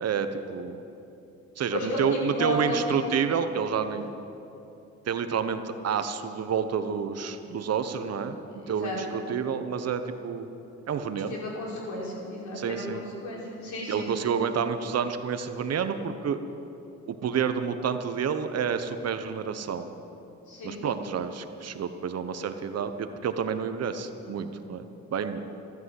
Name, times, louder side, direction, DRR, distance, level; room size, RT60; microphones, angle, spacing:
voice 1, 0.0-0.8 1.6-4.1 5.1-8.4 8.7-10.5 10.9-11.3 12.5-13.0 13.9-16.4 17.1-19.9 20.6-25.4, right 6 dB, 55° right, 9 dB, 1.2 m, -29 dB
voice 2, 1.7-3.0 8.6-9.2 11.1-14.1 20.5-20.9, left 1 dB, 70° left, -3 dB, 5.1 m, -33 dB
14.5 x 13.0 x 7.8 m, 2.9 s
cardioid pair, 90°, 30 cm